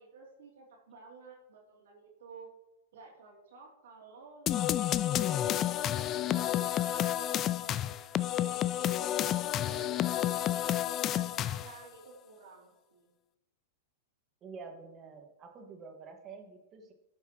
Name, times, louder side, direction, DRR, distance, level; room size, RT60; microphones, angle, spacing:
voice 1, 0.0-2.5 2.9-7.9 8.4-10.6 11.0-13.1, right 4 dB, 75° right, -1 dB, 2.8 m, -53 dB
sound 1, 4.5-11.8, left 12 dB, 30° left, 0.4 m, -30 dB
voice 2, 14.4-16.9, right 4 dB, 30° right, 3 dB, 1.7 m, -48 dB
15.5 x 5.7 x 3.0 m, 0.97 s
hypercardioid pair, 115°, 0 cm